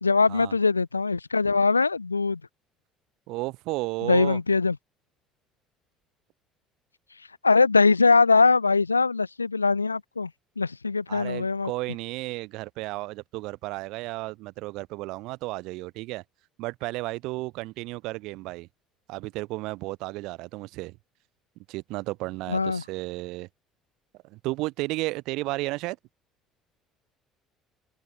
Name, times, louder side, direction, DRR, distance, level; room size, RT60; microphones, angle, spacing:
voice 1, 0.0-2.4 4.0-4.8 7.4-10.3 10.6-11.7 22.5-22.8, left 4 dB, 85° left, 0.5 m, -22 dB
voice 2, 3.3-4.4 11.1-16.2 16.6-18.7 19.1-21.0 21.7-23.5 24.2-26.0, right 21 dB, 60° right, 4.3 m, -33 dB
open air
figure-of-eight pair, 55°, 0 cm